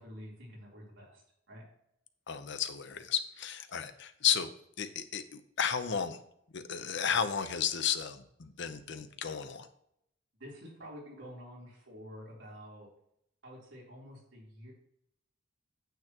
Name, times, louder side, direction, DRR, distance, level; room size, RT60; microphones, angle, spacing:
voice 1, 0.0-1.6 10.4-12.9 13.4-14.7, equal, 70° right, -4 dB, 3.5 m, -49 dB
voice 2, 2.3-4.5 4.8-6.2 6.5-9.7, left 7 dB, 65° left, 10 dB, 0.8 m, -33 dB
9.2 x 8.0 x 3.0 m, 0.73 s
head